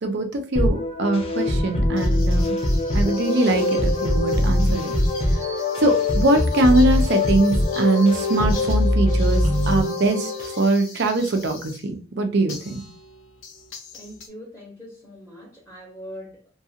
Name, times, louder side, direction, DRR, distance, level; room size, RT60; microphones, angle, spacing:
voice 1, 0.0-2.6 2.9-5.0 5.3-5.4 5.8-12.9, right 2 dB, 60° right, 0.5 m, -22 dB
sound 1, 0.6-10.6, left 1 dB, 30° left, 0.5 m, -22 dB
sound 2, 2.0-11.9 12.5-14.3, left 3 dB, 75° left, 0.7 m, -42 dB
voice 2, 13.9-16.5, equal, 5° right, 0.8 m, -41 dB
2.4 x 2.3 x 2.7 m
head